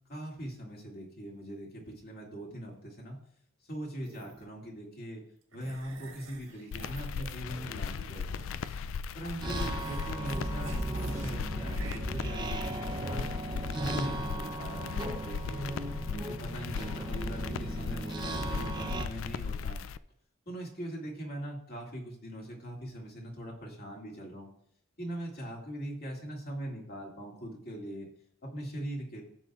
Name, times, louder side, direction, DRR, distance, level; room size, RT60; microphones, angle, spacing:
voice 1, 0.1-3.2 3.7-5.2 5.5-8.4 9.1-13.3 13.7-15.7 16.1-19.8 20.5-24.5 25.0-28.1 28.4-29.2, right 1 dB, 50° left, -2 dB, 2.3 m, -41 dB
sound 1, 4.0-4.5 5.5-8.9 9.2-11.3 11.7-12.0, right 4 dB, 80° right, 1.5 m, -50 dB
sound 2, 6.7-20.0, left 6 dB, 70° left, 0.3 m, -38 dB
sound 3, 9.4-19.1, right 2 dB, 20° right, 0.7 m, -36 dB
15.0 x 7.6 x 2.4 m, 0.69 s
head